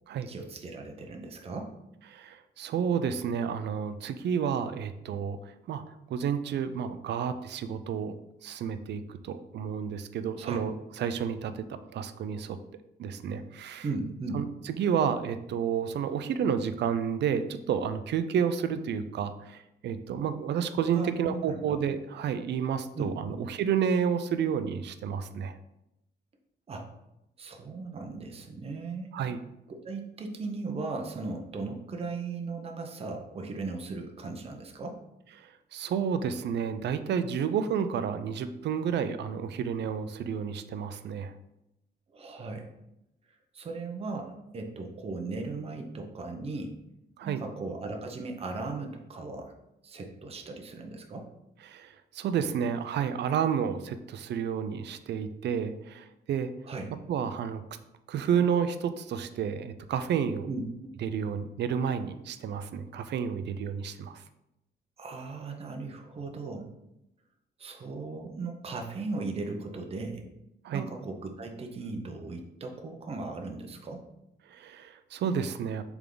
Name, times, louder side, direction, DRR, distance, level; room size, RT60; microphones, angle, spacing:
voice 1, 0.3-1.7 10.4-10.6 13.8-14.4 20.9-21.6 22.9-23.4 26.7-26.9 27.4-29.1 29.8-35.0 42.1-42.7 43.5-46.7 47.2-49.5 49.8-51.3 56.6-56.9 60.5-60.7 65.0-66.7 67.6-70.2 70.7-74.0, right 3 dB, 35° right, 3 dB, 0.7 m, -37 dB
voice 2, 2.1-5.8 6.1-8.1 8.4-12.6 13.0-13.9 14.3-25.5 29.1-29.4 35.4-41.3 47.2-47.4 51.7-56.5 57.1-57.6 58.1-60.5 61.0-64.2 70.6-70.9 74.5-75.8, right 7 dB, 70° right, 11 dB, 0.5 m, -30 dB
6.9 x 3.6 x 3.8 m, 0.87 s
wide cardioid pair, 170°, 18 cm